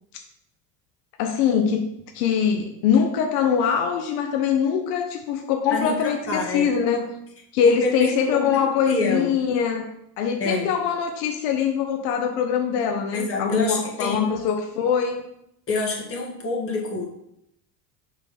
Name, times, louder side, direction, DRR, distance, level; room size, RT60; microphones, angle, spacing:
voice 1, 1.2-7.1 7.5-15.2, left 7 dB, 80° left, 5 dB, 1.0 m, -23 dB
voice 2, 5.7-6.7 7.7-9.4 10.4-10.7 13.1-14.3 15.7-17.1, left 3 dB, 30° left, -1 dB, 1.9 m, -27 dB
5.7 x 4.0 x 5.9 m, 0.78 s
supercardioid pair, 115°, 48 cm